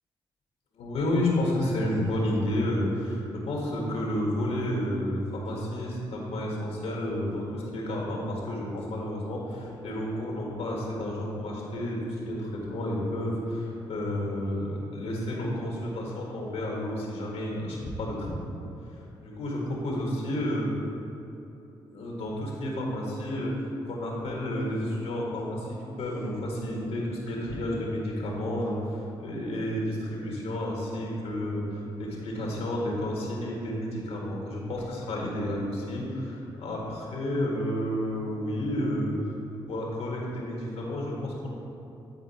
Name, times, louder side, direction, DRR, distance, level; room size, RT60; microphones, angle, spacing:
voice 1, 0.7-18.6 19.2-20.7 21.9-23.5 23.9-39.1 39.7-41.5, left 1 dB, 80° left, -3 dB, 1.8 m, -31 dB
10.0 x 4.4 x 4.4 m, 2.8 s
supercardioid pair, 55°, 11 cm